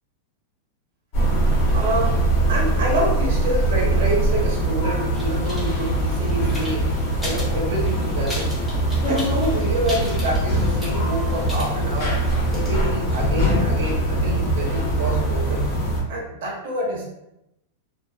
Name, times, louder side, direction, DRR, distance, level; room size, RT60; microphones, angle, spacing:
sound 1, 1.1-16.0, right 1 dB, 40° left, 0.8 m, -22 dB
voice 1, 1.7-6.9 7.2-8.6 9.1-12.2 12.5-15.7 16.1-17.0, right 1 dB, 60° right, -3 dB, 0.7 m, -27 dB
sound 2, 5.1-12.7, left 4 dB, 5° left, 0.6 m, -36 dB
2.4 x 2.3 x 2.3 m, 0.87 s
supercardioid pair, 175°, 0 cm